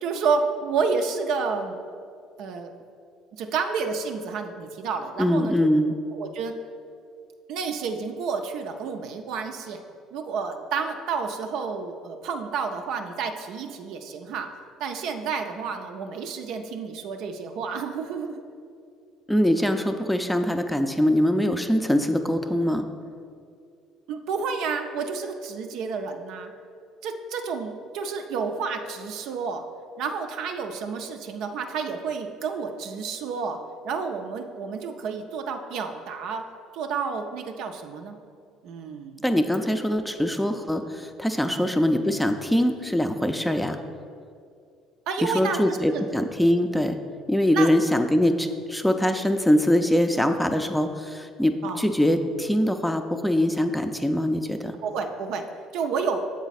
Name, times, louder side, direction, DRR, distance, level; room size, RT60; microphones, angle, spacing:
voice 1, 0.0-1.8 2.4-2.7 3.4-5.7 6.1-6.6 7.5-9.8 10.1-14.5 14.8-18.4 24.1-26.5 27.0-29.6 30.0-33.6 33.8-36.4 36.7-38.2 38.6-39.2 41.4-41.7 45.1-46.0 47.5-47.7 51.6-51.8 54.8-55.4 55.7-56.3, right 5 dB, 70° right, 5 dB, 0.4 m, -30 dB
voice 2, 5.2-5.9 19.3-22.9 39.2-43.8 45.2-47.0 47.3-54.7, left 1 dB, 5° left, 7 dB, 0.4 m, -23 dB
7.2 x 3.9 x 4.1 m, 2.3 s
hypercardioid pair, 65°, 0 cm